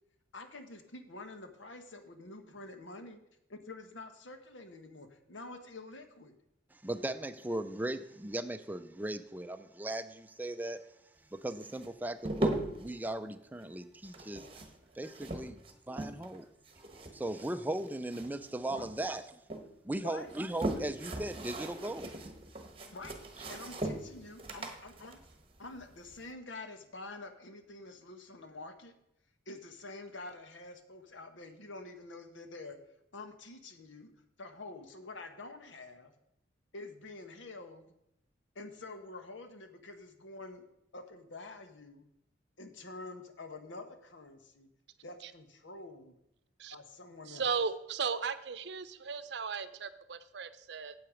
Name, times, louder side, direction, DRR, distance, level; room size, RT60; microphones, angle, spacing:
voice 1, 0.3-3.2 3.5-6.3 18.7-19.1 20.0-20.3 22.9-25.2 25.6-28.9 29.5-32.8 33.1-34.1 34.4-36.1 36.7-37.9 38.5-40.6 40.9-42.1 42.6-44.7 45.0-46.2 46.7-47.4, left 2 dB, 85° left, 7 dB, 1.2 m, -47 dB
voice 2, 6.7-10.8 11.3-14.5 15.0-15.6 15.9-16.5 17.1-19.4 19.8-22.1, right 1 dB, 10° right, 9 dB, 0.4 m, -38 dB
sound 1, 11.6-12.9 14.0-16.4 16.7-18.5 18.8-19.6 20.2-26.2, right 1 dB, 30° right, 1.2 m, -39 dB
voice 3, 47.3-50.9, right 5 dB, 65° right, 12 dB, 0.6 m, -36 dB
8.8 x 7.9 x 5.1 m, 0.82 s
head